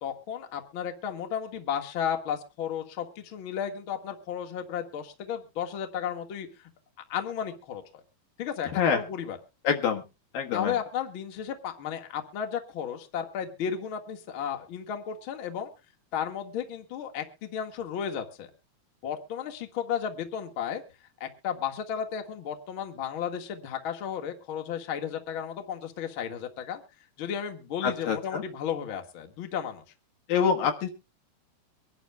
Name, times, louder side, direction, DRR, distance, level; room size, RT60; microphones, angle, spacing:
voice 1, 0.0-6.7 7.1-8.0 8.4-9.4 10.5-15.7 16.1-18.5 19.0-20.8 21.2-26.8 27.2-29.8 30.6-30.7, left 8 dB, 45° left, 4 dB, 1.8 m, -34 dB
voice 2, 9.6-10.0 10.3-10.8 27.8-28.4 30.3-30.9, left 7 dB, 70° left, 3 dB, 3.1 m, -26 dB
24.5 x 11.0 x 2.3 m, 0.28 s
omnidirectional pair, 4.3 m